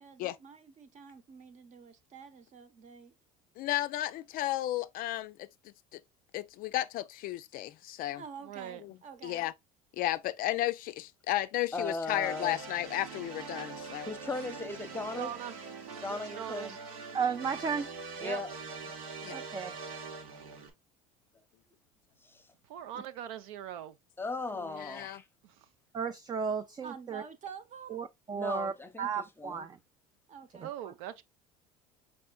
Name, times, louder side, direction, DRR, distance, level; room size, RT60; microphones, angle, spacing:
voice 1, 0.0-3.1 8.1-9.4 26.8-28.0 30.3-30.7, right 6 dB, 40° right, 0.9 m, -48 dB
voice 2, 3.6-5.4 6.3-8.2 9.2-9.5 10.0-14.1 19.2-19.4 24.7-25.2, left 15 dB, 55° left, 0.4 m, -33 dB
voice 3, 8.4-8.8 15.2-15.5 16.1-16.8 18.2-18.4 22.6-24.0 25.4-25.7 30.6-31.2, right 10 dB, 75° right, 0.6 m, -41 dB
voice 4, 11.7-12.6 14.0-15.3 16.0-16.8 18.2-18.5 18.9-19.0 22.2-22.5 24.2-25.3 28.3-29.7, left 3 dB, 10° left, 0.8 m, -37 dB
sound 1, 12.2-20.7, right 4 dB, 90° right, 1.2 m, -43 dB
voice 5, 17.1-17.9 19.3-19.7 25.9-27.2 27.9-29.8 30.6-30.9, right 6 dB, 25° right, 0.4 m, -34 dB
4.4 x 4.2 x 2.3 m
hypercardioid pair, 80°, 18 cm